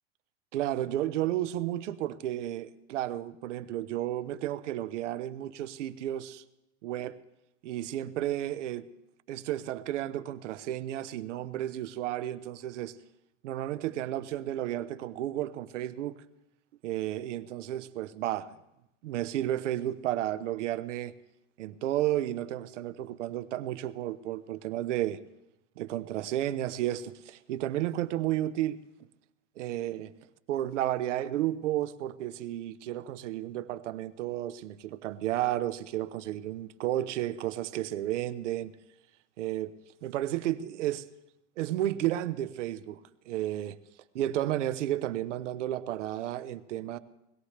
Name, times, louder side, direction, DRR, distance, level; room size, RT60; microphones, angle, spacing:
voice 1, 0.5-6.4 6.8-7.2 7.6-8.9 9.3-13.0 13.4-16.2 16.8-18.5 19.0-21.1 21.6-25.2 25.8-28.8 29.6-30.1 30.5-38.7 39.4-41.1 41.6-43.0 43.3-43.7 44.1-47.0, right 13 dB, 90° right, 0.9 m, -32 dB
21.0 x 16.5 x 3.3 m
supercardioid pair, 160°, 35 cm